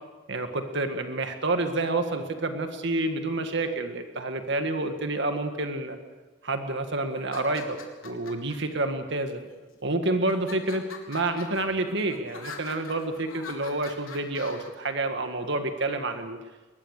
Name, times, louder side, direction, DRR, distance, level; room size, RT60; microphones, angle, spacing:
voice 1, 0.3-6.0 6.4-7.8 8.0-9.4 9.8-16.4, right 2 dB, 60° right, 6 dB, 1.8 m, -28 dB
sound 1, 7.2-8.5 9.3-9.8 10.3-14.7, left 5 dB, 80° left, 4.0 m, -44 dB
22.5 x 20.5 x 6.6 m, 1.2 s
head